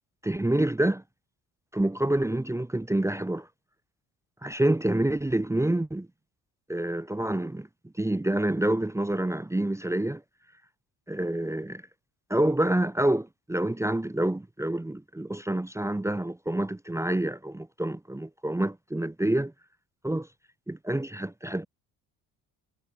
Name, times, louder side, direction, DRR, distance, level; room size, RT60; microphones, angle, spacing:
voice 1, 0.2-1.0 1.7-3.5 4.4-6.1 6.7-7.7 8.0-10.2 11.1-11.8 12.3-19.5 20.0-20.3 20.7-21.7, right 1 dB, 5° right, 0.8 m, -27 dB
supercardioid pair, 65°, 40 cm